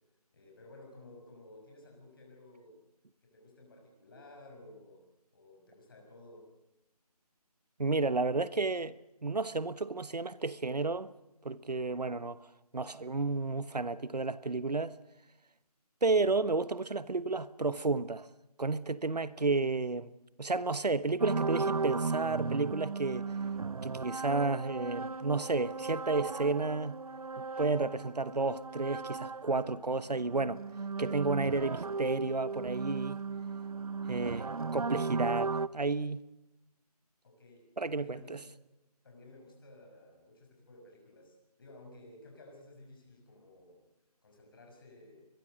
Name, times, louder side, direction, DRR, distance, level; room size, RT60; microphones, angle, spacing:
voice 1, 0.3-2.8 3.2-5.1 5.3-6.5 34.1-34.8 37.2-38.5 39.0-43.9 44.2-45.3, left 2 dB, 35° left, 6.2 m, -55 dB
voice 2, 7.8-9.0 9.2-11.1 11.4-12.4 12.7-15.0 16.0-18.3 18.6-20.1 20.4-23.3 23.8-27.0 27.4-30.6 31.0-33.2 34.1-34.4 34.7-36.2 37.8-38.4, right 3 dB, 85° right, 1.2 m, -31 dB
sound 1, 21.2-29.8 30.1-35.7, right 4 dB, 65° right, 0.7 m, -36 dB
22.5 x 21.0 x 6.4 m
figure-of-eight pair, 170°, 20 cm